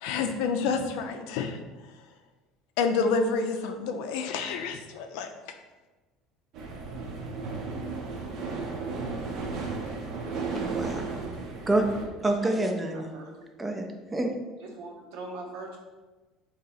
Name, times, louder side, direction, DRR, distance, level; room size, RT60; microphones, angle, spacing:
voice 1, 0.0-1.6 2.8-5.3, left 4 dB, 75° left, 0.5 m, -28 dB
sound 1, 6.5-12.0, right 4 dB, 50° right, 0.6 m, -34 dB
voice 2, 10.5-11.3 11.7-11.9 12.2-13.1 13.6-14.3, right 2 dB, 10° right, 0.4 m, -28 dB
voice 3, 12.9-13.5 14.6-15.8, right 2 dB, 80° right, 0.9 m, -41 dB
3.9 x 2.8 x 4.0 m
cardioid pair, 160°, 0 cm